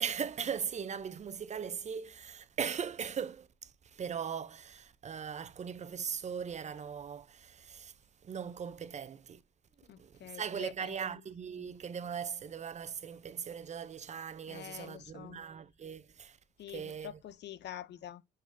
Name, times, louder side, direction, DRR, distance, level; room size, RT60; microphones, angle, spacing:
voice 1, 0.0-7.9 8.2-9.4 10.0-16.4 16.7-17.2, right 7 dB, 35° right, 0.4 m, -39 dB
voice 2, 9.9-11.2 11.6-11.7 14.5-15.4 16.6-18.2, left 11 dB, 60° left, 0.4 m, -47 dB
6.6 x 3.1 x 2.5 m
cardioid pair, 90°, 20 cm